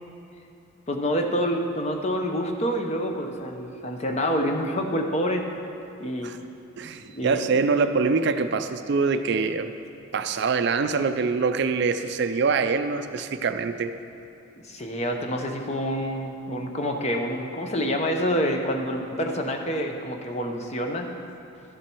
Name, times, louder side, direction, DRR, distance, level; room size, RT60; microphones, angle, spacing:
voice 1, 0.9-5.4 6.0-6.3 7.1-7.6 14.6-21.1, equal, 30° left, 3 dB, 0.8 m, -27 dB
voice 2, 6.8-9.7 10.1-13.9, right 4 dB, 55° right, 10 dB, 0.4 m, -24 dB
13.0 x 7.4 x 4.5 m, 2.8 s
head